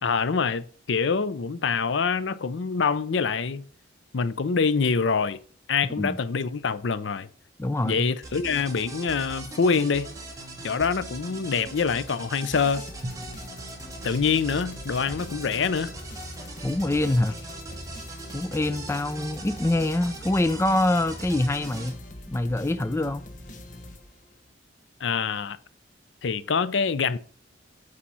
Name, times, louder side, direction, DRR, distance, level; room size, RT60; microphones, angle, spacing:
voice 1, 0.0-3.6 4.1-5.4 5.7-7.3 7.8-10.1 10.6-12.8 14.0-15.9 25.0-25.6 26.2-27.2, left 5 dB, 70° left, 0.5 m, -25 dB
voice 2, 7.6-8.1 16.6-17.4 18.3-22.0 22.3-23.2, left 1 dB, 15° left, 0.4 m, -25 dB
sound 1, 8.2-21.9, right 2 dB, 20° right, 1.7 m, -40 dB
sound 2, 12.4-24.5, left 1 dB, 40° left, 1.0 m, -43 dB
Drum, 13.0-16.0, equal, 35° right, 0.9 m, -44 dB
8.7 x 4.8 x 5.5 m
head